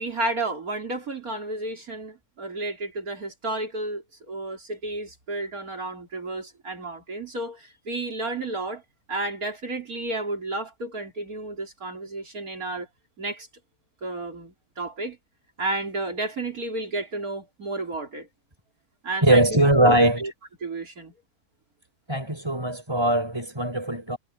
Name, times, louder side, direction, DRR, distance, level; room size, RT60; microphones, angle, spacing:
voice 1, 0.0-8.8 9.1-12.9 13.2-13.5 14.0-15.2 15.6-18.3 19.0-20.3 20.6-21.1, right 2 dB, 65° right, 4.0 m, -32 dB
voice 2, 19.2-20.2 22.1-24.2, right 1 dB, 15° right, 5.6 m, -21 dB
omnidirectional pair, 1.7 m